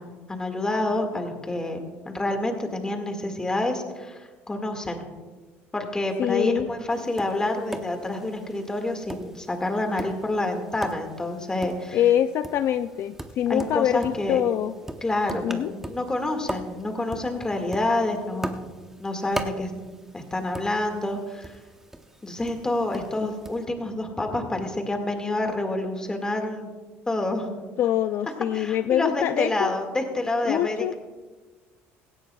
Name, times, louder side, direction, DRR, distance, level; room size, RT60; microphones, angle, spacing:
voice 1, 0.0-1.8 2.1-5.1 5.7-12.0 13.5-14.4 15.0-18.7 19.0-19.7 20.1-21.6 22.2-26.7 27.1-27.6 28.5-30.9, left 2 dB, 15° left, 4 dB, 1.9 m, -28 dB
voice 2, 6.2-6.7 11.9-14.7 15.4-15.7 27.8-29.7 30.5-30.9, left 11 dB, 55° left, 10 dB, 0.4 m, -24 dB
Tap, 6.9-23.7, right 1 dB, 10° right, 0.8 m, -40 dB
17.0 x 15.5 x 2.3 m, 1.3 s
cardioid pair, 115°, 5 cm